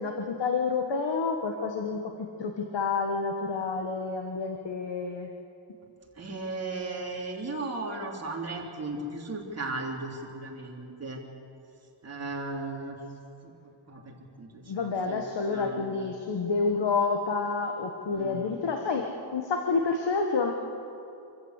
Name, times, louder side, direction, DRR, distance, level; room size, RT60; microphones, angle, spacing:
voice 1, 0.0-5.3 14.7-20.5, left 4 dB, 60° left, 3 dB, 1.5 m, -29 dB
voice 2, 6.1-11.2 12.0-13.0 13.4-13.5 13.9-15.2 15.5-16.1 18.1-18.6, right 2 dB, 30° right, -2 dB, 3.4 m, -36 dB
26.0 x 14.5 x 8.3 m, 2.7 s
wide cardioid pair, 135°, 48 cm